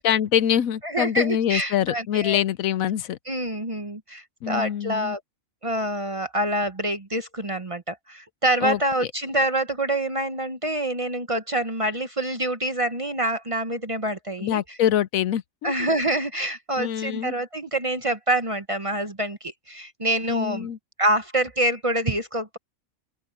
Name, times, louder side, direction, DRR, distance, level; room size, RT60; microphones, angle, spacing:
voice 1, 0.0-3.2 4.4-5.2 8.6-8.8 14.4-15.7 16.8-17.3 20.3-20.8, left 10 dB, 80° left, 1.1 m, -24 dB
voice 2, 0.8-2.4 3.3-5.2 5.6-14.6 15.6-20.7 21.0-22.6, right 1 dB, 30° right, 0.9 m, -26 dB
open air
omnidirectional pair, 1.4 m